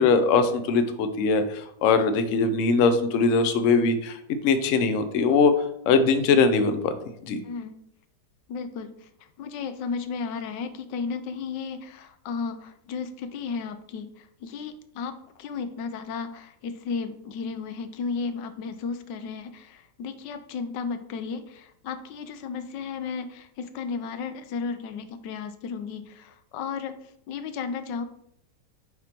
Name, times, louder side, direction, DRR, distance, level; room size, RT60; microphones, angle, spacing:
voice 1, 0.0-4.2 4.4-5.5 5.9-6.9 7.2-7.4, left 4 dB, 65° left, 9 dB, 0.8 m, -21 dB
voice 2, 7.4-7.8 8.5-9.1 9.4-26.9 27.3-28.1, left 5 dB, 90° left, 9 dB, 1.3 m, -34 dB
9.3 x 3.6 x 2.9 m, 0.74 s
omnidirectional pair, 1.9 m